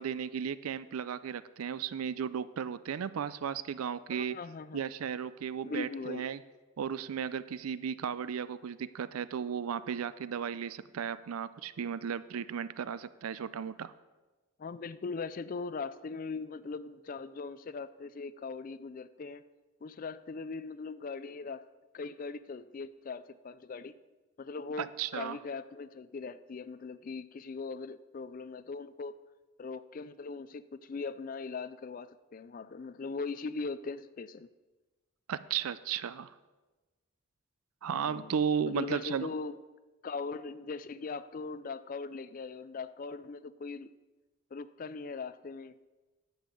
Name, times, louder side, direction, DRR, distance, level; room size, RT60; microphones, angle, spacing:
voice 1, 0.0-4.4 4.7-6.4 6.8-13.9 24.8-25.4 35.3-36.3 37.8-39.3, right 7 dB, 85° right, 16 dB, 0.4 m, -35 dB
voice 2, 4.1-4.8 5.6-6.3 14.6-19.4 19.8-21.7 21.9-23.9 24.4-29.1 29.6-34.5 37.8-38.4 38.7-39.6 40.0-43.9 44.5-45.9, left 4 dB, 40° left, 14 dB, 0.3 m, -40 dB
10.5 x 5.4 x 7.6 m, 1.2 s
head